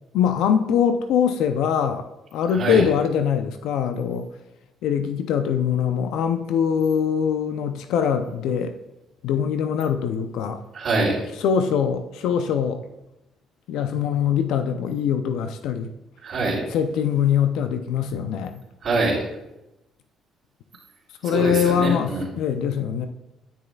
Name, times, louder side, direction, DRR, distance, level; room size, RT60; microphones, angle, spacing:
voice 1, 0.1-2.1 2.3-4.3 4.8-8.7 9.2-10.6 11.4-12.8 13.7-15.9 16.7-18.6 21.2-23.1, left 8 dB, 80° left, 9 dB, 0.4 m, -23 dB
voice 2, 2.5-2.8 10.7-11.2 16.2-16.6 18.8-19.2 21.2-22.2, right 2 dB, 55° right, -10 dB, 2.8 m, -24 dB
10.0 x 6.4 x 2.3 m, 0.94 s
supercardioid pair, 75°, 0 cm